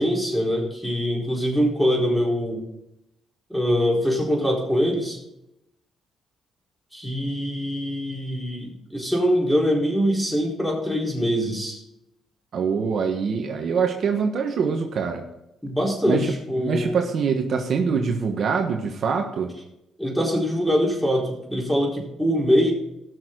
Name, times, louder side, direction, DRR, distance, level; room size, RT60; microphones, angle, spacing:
voice 1, 0.0-2.6 3.5-5.2 6.9-11.8 15.6-17.0 20.0-22.7, equal, ahead, -2 dB, 4.3 m, -23 dB
voice 2, 12.5-15.2 16.1-19.5, right 5 dB, 60° right, 4 dB, 1.3 m, -24 dB
18.5 x 6.5 x 3.9 m, 0.86 s
cardioid pair, 90°, 0 cm